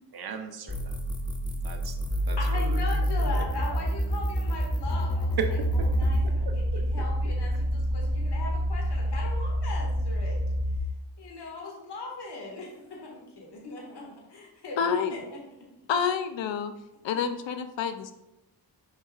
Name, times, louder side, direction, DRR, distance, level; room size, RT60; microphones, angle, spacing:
voice 1, 0.1-1.0 1.6-2.0 2.3-2.8 3.3-3.4 5.4-5.9 6.2-6.8, right 6 dB, 55° right, 6 dB, 0.9 m, -36 dB
sound 1, 0.7-6.3, equal, 10° left, 0.7 m, -28 dB
voice 2, 2.4-10.5 11.2-15.4, left 3 dB, 65° left, -2 dB, 1.9 m, -39 dB
sound 2, 5.7-10.8, equal, 30° right, 1.3 m, -28 dB
voice 3, 14.8-15.1 15.9-16.7 17.0-18.1, left 7 dB, 80° left, 9 dB, 0.7 m, -28 dB
7.0 x 5.5 x 2.4 m, 0.92 s
cardioid pair, 80°, 44 cm